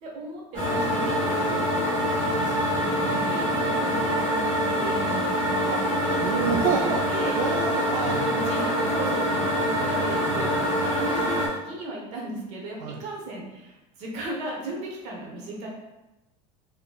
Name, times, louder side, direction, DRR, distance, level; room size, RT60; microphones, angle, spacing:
voice 1, 0.0-4.2 4.7-7.4 8.2-15.7, right 2 dB, 40° right, -2 dB, 1.0 m, -37 dB
sound 1, 0.5-11.5, equal, 20° right, 1.3 m, -25 dB
voice 2, 6.2-7.0 7.4-9.1 12.8-13.0, right 6 dB, 65° right, -1 dB, 0.5 m, -29 dB
4.3 x 3.1 x 2.3 m, 1.0 s
cardioid pair, 170°, 17 cm